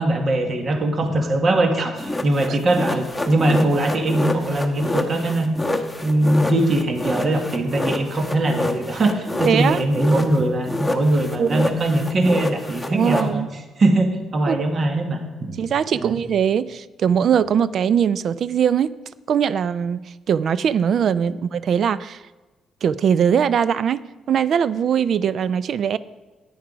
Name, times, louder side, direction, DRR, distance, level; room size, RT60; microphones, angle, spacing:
voice 1, 0.0-13.4 13.8-15.2 15.5-15.6 15.9-16.2 21.3-21.4, right 1 dB, 45° right, 5 dB, 1.5 m, -21 dB
sound 1, 2.0-10.4 10.7-13.3, left 2 dB, 5° left, 1.2 m, -27 dB
voice 2, 9.4-9.9 11.4-11.7 12.9-13.5 14.5-14.6 15.6-18.9 19.3-22.2 22.8-26.0, right 8 dB, 60° right, 17 dB, 0.3 m, -21 dB
10.5 x 8.7 x 5.0 m, 1.2 s
cardioid pair, 90°, 0 cm